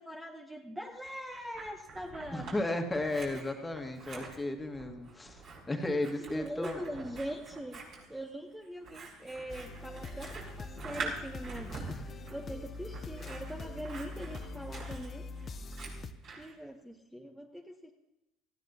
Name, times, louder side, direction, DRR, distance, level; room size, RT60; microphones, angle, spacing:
voice 1, 0.0-2.6 3.3-3.6 6.2-7.8 8.1-12.0 12.3-15.3 16.4-17.9, equal, 5° right, 4 dB, 1.0 m, -42 dB
Scissors, 1.0-2.6 2.9-16.5, right 3 dB, 50° right, 5.4 m, -45 dB
voice 2, 2.3-5.4 5.7-6.8 11.9-12.1, left 2 dB, 15° left, 5 dB, 1.8 m, -34 dB
sound 1, 9.5-16.1, left 3 dB, 35° left, 0.8 m, -43 dB
18.5 x 15.5 x 2.9 m, 0.93 s
figure-of-eight pair, 65°, 0 cm